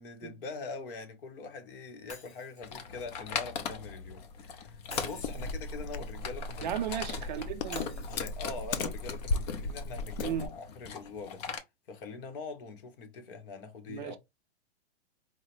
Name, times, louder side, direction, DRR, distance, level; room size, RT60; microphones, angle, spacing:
voice 1, 0.0-6.7 7.2-7.4 8.1-11.4 11.9-14.2, left 4 dB, 55° left, 1.1 m, -43 dB
Shatter, 2.1-4.2 4.9-7.0 7.7-9.8, left 3 dB, 20° left, 1.5 m, -51 dB
sound 1, 2.6-11.6, left 6 dB, 40° left, 0.6 m, -40 dB
sound 2, 5.1-10.5, left 3 dB, 80° left, 0.7 m, -37 dB
voice 2, 6.6-8.1 10.2-10.5 13.9-14.2, right 9 dB, 45° right, 0.4 m, -35 dB
4.6 x 2.1 x 3.0 m
hypercardioid pair, 150°, 33 cm